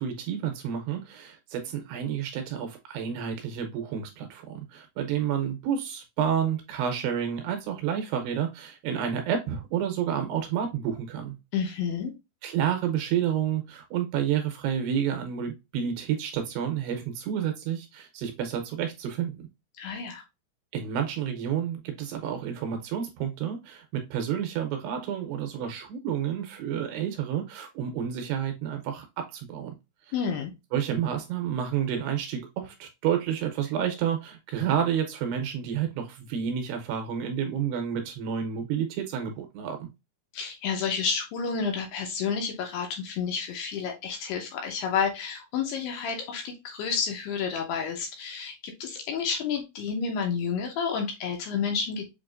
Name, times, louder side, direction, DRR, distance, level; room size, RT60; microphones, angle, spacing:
voice 1, 0.0-11.4 12.4-19.3 20.7-29.7 30.7-39.8, right 8 dB, 80° right, 2.6 m, -30 dB
voice 2, 11.5-12.1 19.8-20.2 30.1-30.5 40.3-52.1, left 6 dB, 80° left, 2.5 m, -30 dB
7.2 x 2.9 x 2.4 m
omnidirectional pair, 5.2 m